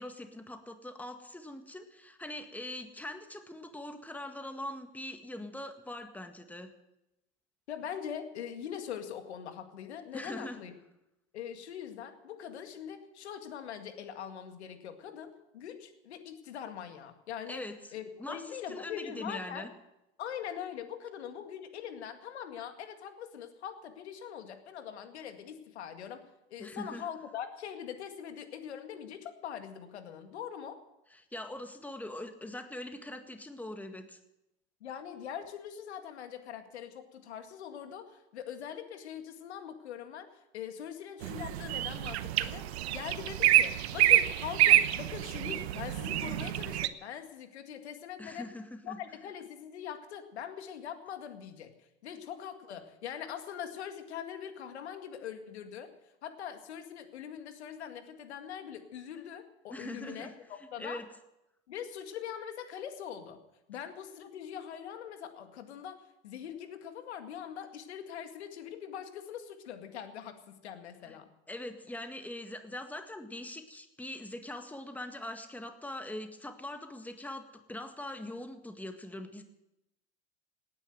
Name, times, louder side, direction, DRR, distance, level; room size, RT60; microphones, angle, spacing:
voice 1, 0.0-6.7 10.1-10.6 17.5-17.7 18.2-19.7 26.6-27.0 31.1-34.2 48.2-49.0 59.7-60.3 60.8-61.1 71.0-71.2 71.5-79.4, left 1 dB, 5° left, 7 dB, 1.8 m, -42 dB
voice 2, 7.7-10.7 11.3-17.7 17.9-19.7 20.2-30.8 34.8-40.3 40.5-48.5 48.8-55.9 56.2-61.0 61.7-63.4 63.7-71.3, left 9 dB, 80° left, 7 dB, 2.0 m, -42 dB
sound 1, 41.2-46.9, right 14 dB, 75° right, 0.9 m, -27 dB
18.5 x 9.8 x 7.9 m, 0.89 s
hypercardioid pair, 85°, 33 cm